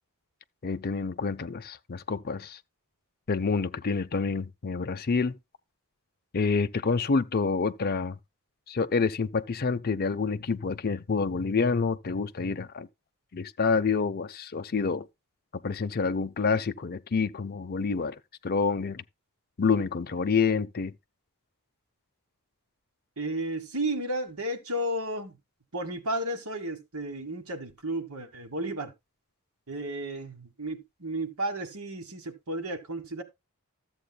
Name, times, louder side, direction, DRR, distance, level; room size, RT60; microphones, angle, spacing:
voice 1, 0.6-2.6 3.3-5.3 6.3-8.2 8.7-12.9 13.3-15.0 15.6-18.2 18.4-19.0 19.6-20.9, left 4 dB, 45° left, 0.5 m, -28 dB
voice 2, 23.2-25.4 25.7-28.9 29.7-33.2, right 1 dB, 75° right, 1.6 m, -33 dB
13.0 x 7.7 x 2.3 m
head